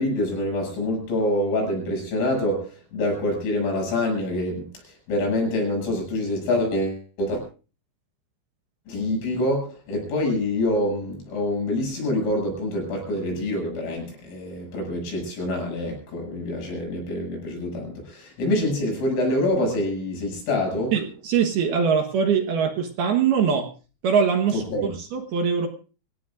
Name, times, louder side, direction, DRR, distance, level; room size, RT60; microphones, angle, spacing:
voice 1, 0.0-4.7 5.1-7.4 8.9-21.0 24.5-24.9, left 1 dB, 80° left, 0 dB, 10.0 m, -26 dB
voice 2, 20.9-23.7 24.0-24.6 25.1-25.7, right 6 dB, 65° right, 4 dB, 2.8 m, -22 dB
26.5 x 17.5 x 2.6 m, 0.37 s
omnidirectional pair, 5.7 m